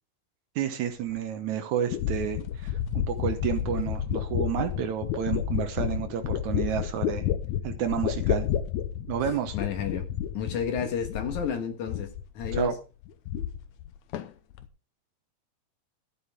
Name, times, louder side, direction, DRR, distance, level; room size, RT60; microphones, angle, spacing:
voice 1, 0.6-7.3 7.6-8.5 9.1-9.6 12.5-12.7, right 9 dB, 70° right, 1.9 m, -30 dB
sound 1, 1.2-1.3 1.9-11.6 11.9-12.7 13.0-13.9 14.1-14.7, left 10 dB, 90° left, 1.6 m, -30 dB
voice 2, 9.5-10.1 10.3-12.1 12.3-12.7, left 7 dB, 60° left, 2.7 m, -31 dB
13.0 x 9.9 x 3.6 m
omnidirectional pair, 4.5 m